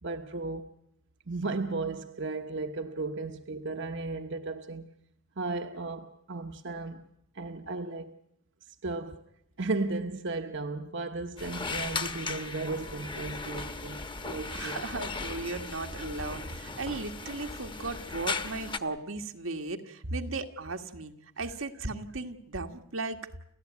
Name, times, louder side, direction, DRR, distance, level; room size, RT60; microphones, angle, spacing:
voice 1, 0.0-0.7 1.3-4.9 5.4-7.1 7.3-8.1 8.8-9.2 9.6-14.8, right 3 dB, 65° right, 1.1 m, -35 dB
sound 1, 11.4-18.8, left 4 dB, 25° left, 1.2 m, -37 dB
voice 2, 14.5-23.2, right 3 dB, 90° right, 1.8 m, -36 dB
29.5 x 14.5 x 9.5 m
head